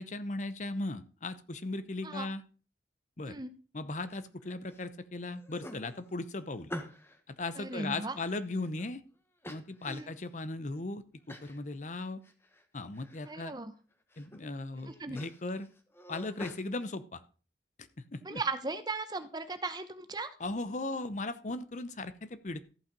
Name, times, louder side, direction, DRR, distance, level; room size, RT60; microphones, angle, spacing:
voice 1, 0.0-2.4 3.2-3.4 3.7-6.7 7.3-9.0 9.5-12.2 12.7-13.5 14.2-15.7 16.1-17.2 17.8-18.4 20.4-22.6, left 2 dB, 45° left, 13 dB, 0.7 m, -37 dB
sound 1, 4.1-4.8 5.2-7.2 7.7-8.9 9.4-10.3 10.7-10.8 11.3-11.6 12.0-12.6 12.9-13.5 13.9-14.4 14.7-16.6, left 1 dB, 15° left, 1.2 m, -47 dB
voice 2, 7.6-8.1 9.9-10.1 13.3-13.7 14.9-15.2 18.2-20.3, right 3 dB, 25° right, 11 dB, 0.9 m, -37 dB
14.0 x 5.8 x 5.2 m, 0.37 s
head